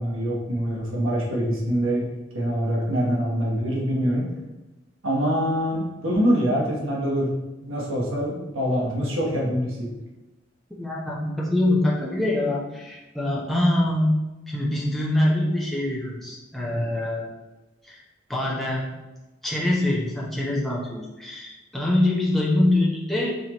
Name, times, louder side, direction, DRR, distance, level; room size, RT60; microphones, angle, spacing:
voice 1, 0.0-2.1 2.3-4.3 5.0-7.3 7.6-9.9, equal, 85° right, -3 dB, 1.0 m, -24 dB
voice 2, 10.7-14.1 14.5-17.3 17.8-18.0 18.3-18.9 19.4-23.4, left 1 dB, ahead, -5 dB, 0.6 m, -24 dB
4.1 x 3.0 x 2.9 m, 1.1 s
head